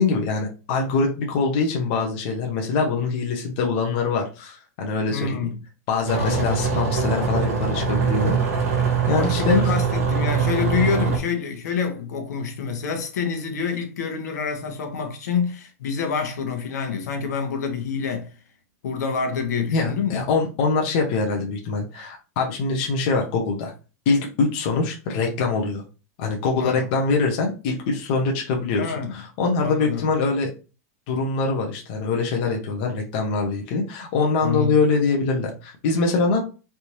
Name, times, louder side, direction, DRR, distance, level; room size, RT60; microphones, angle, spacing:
voice 1, 0.0-5.4 5.9-8.4 9.1-9.6 19.7-23.7 24.1-25.8 26.2-30.5 31.1-36.4, left 4 dB, 40° left, 0.7 m, -23 dB
voice 2, 5.1-5.6 6.1-6.6 9.1-18.3 18.8-20.2 26.6-26.9 28.7-29.2 29.6-30.1 34.4-34.8, left 6 dB, 85° left, 1.0 m, -27 dB
sound 1, 6.1-11.2, right 5 dB, 60° right, 1.1 m, -23 dB
3.4 x 2.8 x 2.9 m
supercardioid pair, 175°, 9 cm